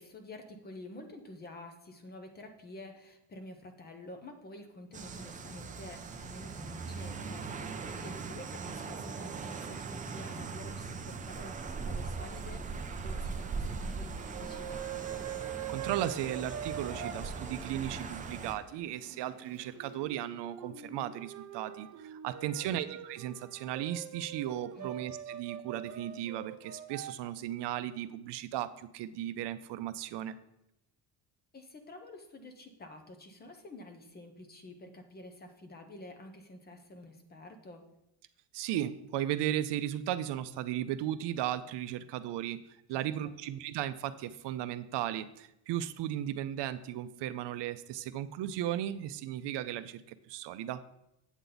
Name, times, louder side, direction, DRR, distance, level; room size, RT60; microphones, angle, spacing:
voice 1, 0.0-14.9 22.5-22.8 24.8-24.9 31.5-37.8 42.9-43.3, left 2 dB, 20° left, 6 dB, 0.7 m, -49 dB
sound 1, 4.9-18.5, right 4 dB, 20° right, 0.3 m, -40 dB
sound 2, 14.3-17.2 19.1-27.1, right 10 dB, 40° right, 0.8 m, -43 dB
Water / Boiling, 15.0-20.1, right 1 dB, 5° right, 1.6 m, -54 dB
voice 2, 15.7-30.4 38.5-42.6 42.9-50.0 50.3-50.8, right 12 dB, 70° right, 12 dB, 0.6 m, -36 dB
8.1 x 8.1 x 3.9 m, 0.84 s
cardioid pair, 175°, 44 cm